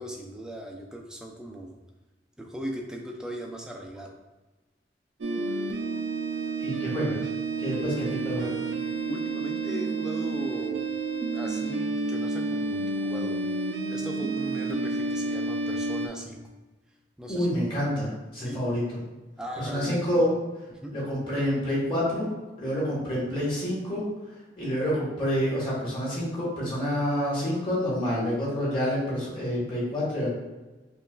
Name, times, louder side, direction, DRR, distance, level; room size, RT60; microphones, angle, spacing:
voice 1, 0.0-1.8 2.4-4.2 7.7-8.1 9.1-10.9 11.3-13.4 13.9-16.4 17.2-17.5 18.4-18.6 19.4-20.2 20.7-21.0 24.7-24.8, right 1 dB, 5° right, 0 dB, 0.4 m, -38 dB
sound 1, 5.2-16.1, right 3 dB, 85° right, 0.4 m, -30 dB
voice 2, 6.6-7.2 7.6-8.6 17.3-19.0 19.6-20.3 20.9-22.3 22.6-24.0 24.6-30.3, equal, 30° left, -7 dB, 1.4 m, -28 dB
5.3 x 2.3 x 2.3 m, 1.2 s
head